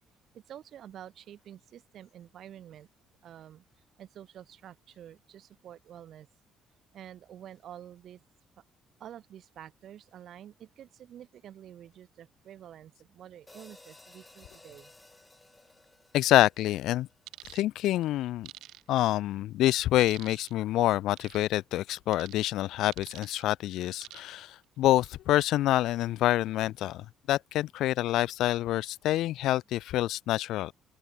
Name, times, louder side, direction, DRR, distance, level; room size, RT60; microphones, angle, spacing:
voice 1, 0.3-2.9 3.2-3.6 4.0-6.3 6.9-8.2 9.0-14.9, right 10 dB, 55° right, 2.4 m, -48 dB
sound 1, 13.5-17.8, left 2 dB, 10° left, 2.2 m, -57 dB
voice 2, 16.1-17.1 17.5-18.5 18.9-30.7, left 14 dB, 75° left, 0.4 m, -27 dB
sound 2, 17.3-17.6 18.4-19.1 20.0-20.5 21.2-21.4 22.1-22.4 22.9-23.4 24.0-24.4 24.9-25.1, right 16 dB, 85° right, 1.3 m, -47 dB
open air
cardioid pair, 145°, 0 cm